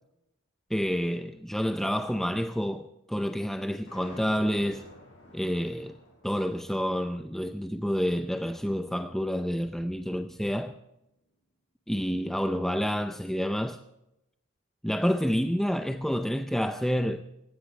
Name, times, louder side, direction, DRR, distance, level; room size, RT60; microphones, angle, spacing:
voice 1, 0.7-4.9 5.3-6.0 6.2-10.8 11.9-13.8 14.8-17.2, equal, ahead, 0.5 m, -29 dB
sound 1, 3.9-10.0, left 1 dB, 55° left, 7.8 m, -52 dB
19.5 x 16.5 x 3.3 m
head